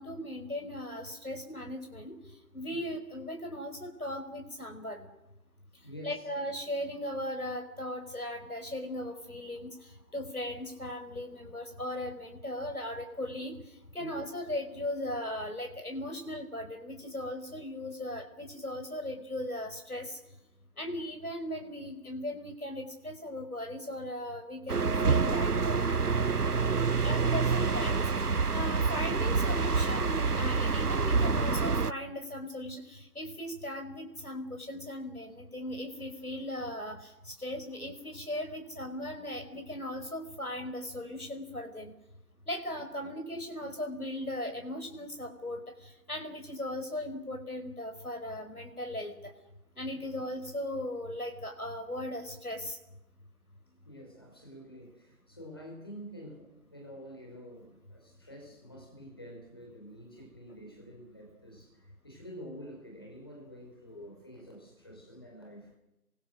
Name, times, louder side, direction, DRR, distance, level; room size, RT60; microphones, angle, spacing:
voice 1, 0.0-2.2 2.5-5.1 6.0-20.2 20.8-25.8 27.0-41.9 42.5-49.3 49.8-52.8, left 1 dB, 75° left, 4 dB, 4.8 m, -38 dB
voice 2, 5.8-6.3 14.0-14.2 49.9-50.0 53.8-65.8, equal, 15° left, -1 dB, 4.5 m, -48 dB
sound 1, 24.7-31.9, right 4 dB, 85° right, 0.9 m, -27 dB
29.5 x 23.5 x 6.5 m, 0.94 s
figure-of-eight pair, 175°, 44 cm